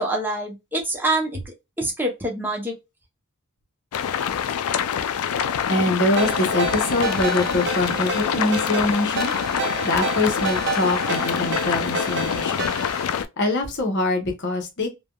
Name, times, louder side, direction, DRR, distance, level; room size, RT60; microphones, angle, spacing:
voice 1, 0.0-2.8, right 1 dB, 10° right, 0.7 m, -26 dB
sound 1, 3.9-13.3, left 8 dB, 80° left, 0.4 m, -26 dB
voice 2, 5.7-9.3 9.8-12.7 13.4-14.9, left 2 dB, 55° left, 0.8 m, -24 dB
Ringtone, 6.2-13.0, right 3 dB, 55° right, 0.7 m, -29 dB
3.3 x 2.2 x 2.2 m
head